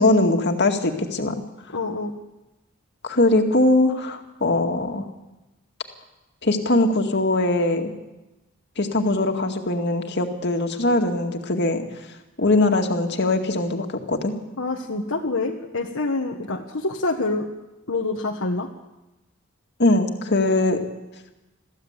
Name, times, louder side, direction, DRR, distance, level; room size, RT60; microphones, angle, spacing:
voice 1, 0.0-1.4 3.0-5.0 6.4-7.9 8.8-11.8 12.4-14.3 19.8-20.8, left 2 dB, 55° left, 4 dB, 2.2 m, -21 dB
voice 2, 1.7-2.1 14.6-17.5 17.9-18.7, left 3 dB, 70° left, 0 dB, 1.5 m, -26 dB
22.0 x 15.5 x 8.3 m, 1.0 s
head